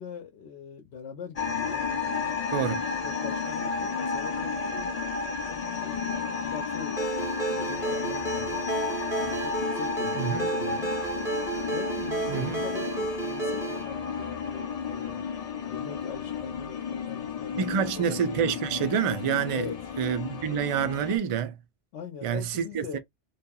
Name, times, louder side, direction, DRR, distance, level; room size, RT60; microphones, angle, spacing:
voice 1, 0.0-2.4 3.0-4.9 5.5-8.6 9.1-11.0 11.6-15.2 15.5-18.5 19.5-19.8 21.9-23.0, left 6 dB, 75° left, 0.9 m, -42 dB
sound 1, 1.4-21.2, left 5 dB, 50° left, 0.4 m, -32 dB
Ringtone, 7.0-13.8, right 4 dB, 5° right, 0.7 m, -32 dB
voice 2, 10.1-10.5 12.3-12.6 17.6-19.7 20.0-21.6 22.2-23.0, right 8 dB, 55° right, 0.3 m, -27 dB
2.7 x 2.3 x 2.2 m
omnidirectional pair, 1.1 m